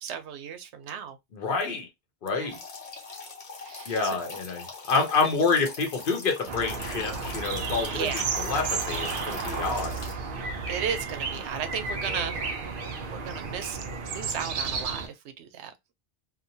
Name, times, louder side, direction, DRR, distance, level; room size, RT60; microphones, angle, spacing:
voice 1, 0.0-1.2 2.3-2.6 3.6-4.2 7.9-8.3 10.7-12.4 13.1-13.8 14.1-15.7, right 8 dB, 85° right, 0.9 m, -35 dB
voice 2, 1.3-1.9 2.2-2.6 3.9-9.9, left 4 dB, 55° left, 0.9 m, -28 dB
sound 1, 2.5-10.1, left 3 dB, 90° left, 1.3 m, -42 dB
sound 2, 6.5-15.1, right 4 dB, 60° right, 0.7 m, -32 dB
2.9 x 2.2 x 2.6 m
omnidirectional pair, 1.1 m